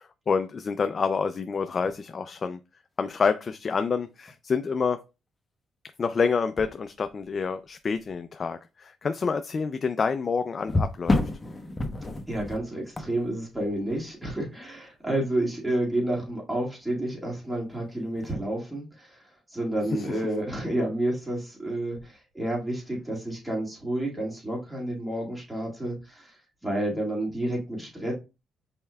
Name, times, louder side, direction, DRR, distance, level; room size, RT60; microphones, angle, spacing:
voice 1, 0.0-2.6 3.0-5.1 6.0-11.2 19.8-20.2, left 5 dB, 40° left, 0.3 m, -28 dB
sound 1, 1.6-2.0 3.5-3.6 4.3-4.4 6.6-7.4 7.9-8.2 10.6-14.3 18.1-18.3, left 2 dB, 20° left, 0.9 m, -30 dB
voice 2, 12.3-19.2 19.5-26.3 26.6-28.1, right 1 dB, 10° right, 2.1 m, -30 dB
5.4 x 4.3 x 2.3 m
cardioid pair, 90°, 0 cm